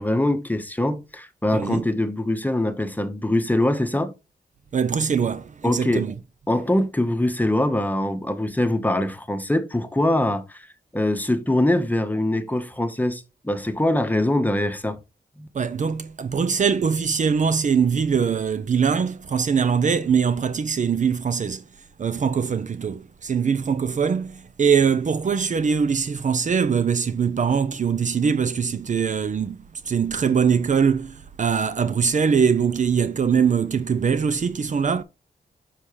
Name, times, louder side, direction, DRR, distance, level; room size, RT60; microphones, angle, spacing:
voice 1, 0.0-4.1 5.6-6.1 6.5-10.7 10.9-15.0 15.4-15.5, left 1 dB, 10° left, 1.1 m, -23 dB
voice 2, 1.5-1.9 4.7-6.1 15.5-21.6 22.0-35.0, right 6 dB, 50° right, 0.6 m, -22 dB
6.9 x 5.7 x 3.2 m
cardioid pair, 70°, 17 cm